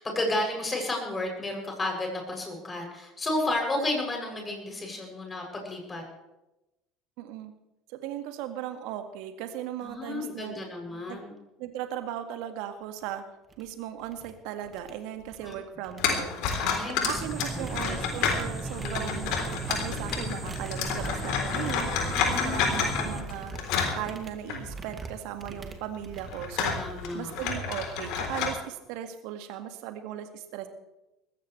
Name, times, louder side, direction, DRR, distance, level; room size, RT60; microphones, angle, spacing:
voice 1, 0.0-6.0 9.8-11.3 15.4-15.6 16.6-17.2 17.6-18.0 18.8-19.3 22.1-22.8 26.7-27.4, left 2 dB, 25° left, 2 dB, 7.6 m, -32 dB
voice 2, 7.2-7.5 7.9-10.6 11.1-11.2 11.6-13.3 13.6-16.4 17.0-21.9 22.3-23.5 24.0-26.8 27.1-30.7, right 11 dB, 65° right, 8 dB, 1.9 m, -37 dB
sound 1, 13.0-13.1 13.5-13.7 14.0-14.3 14.6-15.6 15.8-27.1, right 4 dB, 30° right, 2.5 m, -44 dB
sound 2, 16.0-24.7 25.0-25.1 25.8-28.5, left 6 dB, 60° left, 3.7 m, -30 dB
sound 3, 17.2-23.2, right 1 dB, 15° right, 1.9 m, -36 dB
20.5 x 16.0 x 3.4 m, 0.94 s
hypercardioid pair, 65°, 0 cm